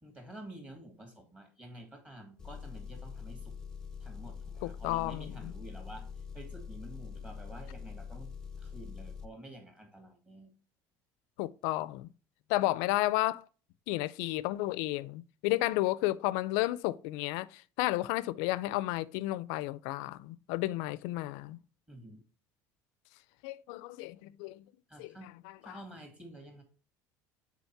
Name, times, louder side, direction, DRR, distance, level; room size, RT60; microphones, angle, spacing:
voice 1, 0.0-3.5 4.0-8.3 8.6-10.5 21.9-22.2 24.9-25.3 25.6-26.6, right 1 dB, 15° right, 2.0 m, -49 dB
Engine, 2.4-9.3, left 6 dB, 10° left, 0.6 m, -44 dB
voice 2, 4.6-5.5 11.4-12.1 12.5-13.4 13.9-21.6 23.4-24.7 25.0-25.8, left 17 dB, 90° left, 0.4 m, -32 dB
7.1 x 4.1 x 4.5 m
cardioid pair, 150°, 7 cm